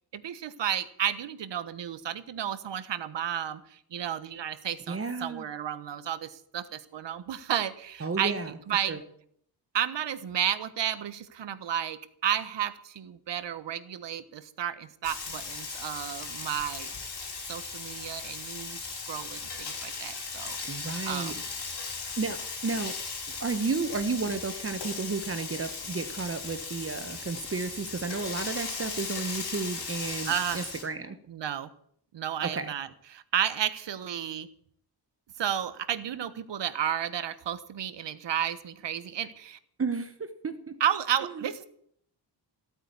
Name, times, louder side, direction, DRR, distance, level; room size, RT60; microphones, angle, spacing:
voice 1, 0.1-8.4 8.7-9.0 9.7-16.9 17.5-21.4 30.2-30.7 31.3-31.7 32.1-34.5 35.4-39.6 40.8-41.7, right 10 dB, 85° right, 13 dB, 1.3 m, -32 dB
voice 2, 4.9-5.4 8.0-8.6 8.9-9.0 20.6-21.4 21.6-21.7 22.2-23.0 23.4-31.2 32.4-32.7 39.8-40.8 41.3-41.5, right 4 dB, 35° right, 10 dB, 1.2 m, -32 dB
Frying (food), 15.0-30.8, left 4 dB, 70° left, 4.9 m, -37 dB
16.0 x 8.9 x 9.6 m, 0.66 s
wide cardioid pair, 150°, 42 cm